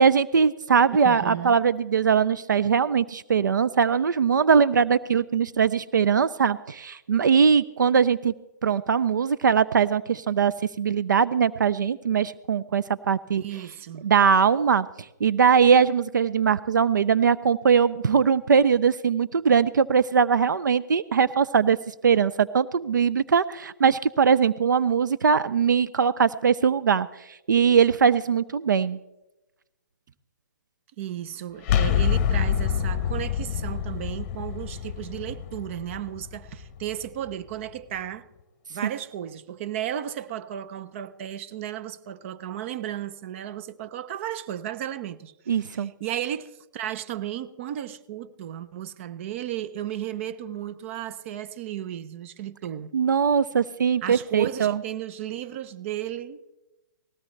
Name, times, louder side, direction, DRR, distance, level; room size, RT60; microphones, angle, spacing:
voice 1, 0.0-8.3 8.6-13.4 14.0-14.9 15.2-21.8 22.0-29.0 45.5-45.9 52.9-54.8, right 6 dB, 80° right, 0.5 m, -21 dB
voice 2, 0.9-1.6 13.4-14.1 31.0-38.3 38.7-52.9 54.0-56.4, right 11 dB, 40° right, 0.7 m, -34 dB
sound 1, 31.6-37.3, left 9 dB, 35° left, 0.9 m, -27 dB
19.5 x 16.5 x 3.2 m
hypercardioid pair, 140°, 10 cm